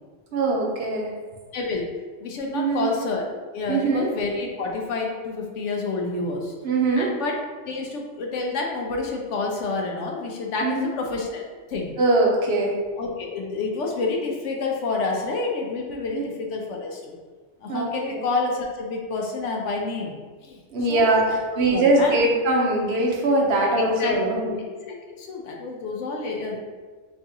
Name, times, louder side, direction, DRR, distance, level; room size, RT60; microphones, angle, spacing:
voice 1, 0.3-1.1 2.5-2.9 3.7-4.1 6.6-7.1 10.6-10.9 12.0-12.8 16.1-16.2 17.7-18.2 20.7-24.6, right 2 dB, 65° right, -1 dB, 0.9 m, -22 dB
voice 2, 1.5-1.9 2.2-3.2 3.5-6.5 7.0-7.3 7.7-11.4 11.7-11.9 13.0-17.1 17.6-20.2 20.5-20.6 20.9-22.2 23.8-24.5 24.8-26.6, left 3 dB, 85° left, 0 dB, 1.0 m, -28 dB
3.5 x 3.1 x 2.8 m, 1.4 s
omnidirectional pair, 1.2 m